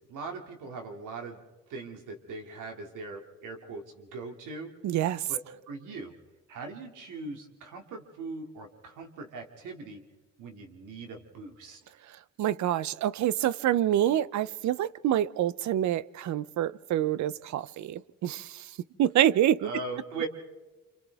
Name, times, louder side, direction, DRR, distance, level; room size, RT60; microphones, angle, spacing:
voice 1, 0.0-1.4 1.7-4.7 5.3-6.1 6.5-10.0 10.4-11.8 19.6-20.3, right 3 dB, 85° right, 2.5 m, -40 dB
voice 2, 4.8-5.2 12.4-18.6 19.0-19.7, right 11 dB, 70° right, 0.6 m, -27 dB
28.0 x 26.5 x 3.5 m
cardioid pair, 90°, 30 cm